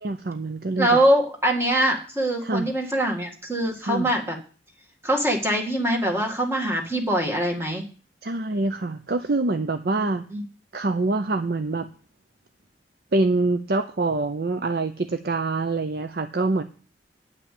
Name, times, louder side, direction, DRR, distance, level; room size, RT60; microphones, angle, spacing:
voice 1, 0.0-1.0 2.4-2.7 3.8-4.1 8.2-10.2 10.7-11.9 13.1-16.6, right 2 dB, 60° right, 9 dB, 0.6 m, -25 dB
voice 2, 0.8-4.4 5.0-7.8 10.0-10.4, right 1 dB, 15° right, 1 dB, 1.9 m, -23 dB
9.6 x 5.9 x 8.3 m, 0.39 s
head